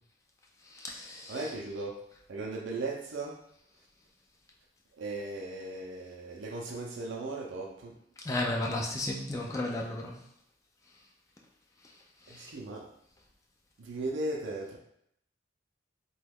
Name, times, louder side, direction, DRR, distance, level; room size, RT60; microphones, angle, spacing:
voice 1, 0.7-1.4 8.3-10.2 12.3-12.5, left 2 dB, 15° left, -1 dB, 0.3 m, -33 dB
voice 2, 1.3-2.0 2.3-3.4 5.0-8.0 12.3-12.9 13.8-14.8, right 2 dB, 65° right, 0 dB, 0.5 m, -37 dB
2.9 x 2.3 x 3.4 m, 0.72 s
head